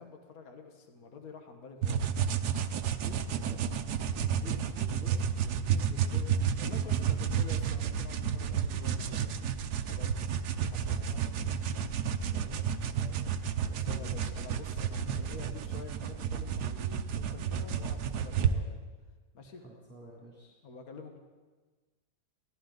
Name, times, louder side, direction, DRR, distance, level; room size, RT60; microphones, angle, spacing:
voice 1, 0.0-2.2 6.5-11.7 13.7-18.8 19.3-19.6 20.6-21.2, left 4 dB, 60° left, 4 dB, 1.9 m, -49 dB
sound 1, 1.8-18.5, right 7 dB, 75° right, 1.3 m, -31 dB
voice 2, 3.0-5.2 5.4-6.3 6.7-7.1 12.1-13.2 13.6-14.1 15.1-15.5 19.5-20.5, right 2 dB, 10° right, -4 dB, 2.7 m, -49 dB
22.5 x 16.0 x 3.9 m, 1.3 s
omnidirectional pair, 1.7 m